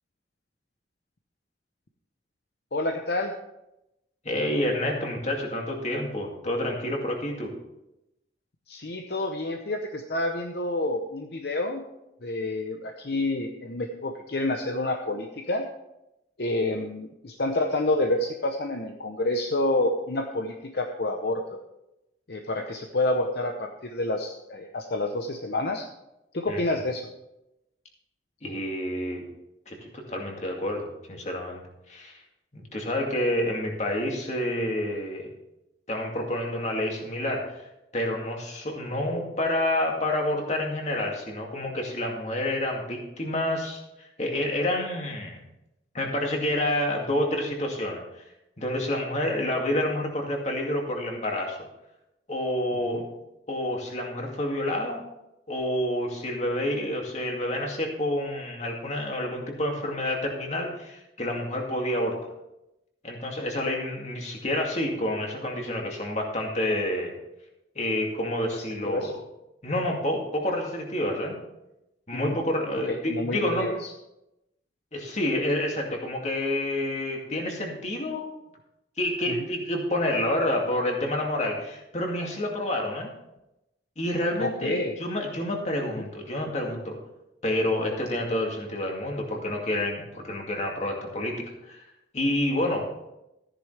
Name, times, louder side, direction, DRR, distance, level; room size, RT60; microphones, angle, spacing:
voice 1, 2.7-3.3 8.7-11.8 12.2-15.7 16.4-21.6 22.3-25.9 26.3-27.1 52.9-53.0 68.5-69.1 72.1-72.4 72.9-73.8 84.4-84.9, left 2 dB, 60° left, 4 dB, 0.8 m, -28 dB
voice 2, 4.2-7.5 26.5-26.6 28.4-29.2 29.7-31.6 31.9-32.2 32.5-35.3 35.9-45.4 45.9-48.2 48.6-51.6 52.3-53.1 53.5-55.0 55.5-62.2 63.0-67.1 67.8-69.1 69.6-71.3 72.1-73.7 74.9-78.3 79.0-83.1 84.0-87.0 87.4-91.8 92.1-92.9, left 1 dB, 40° left, 0 dB, 2.4 m, -28 dB
14.5 x 10.0 x 3.4 m, 0.89 s
head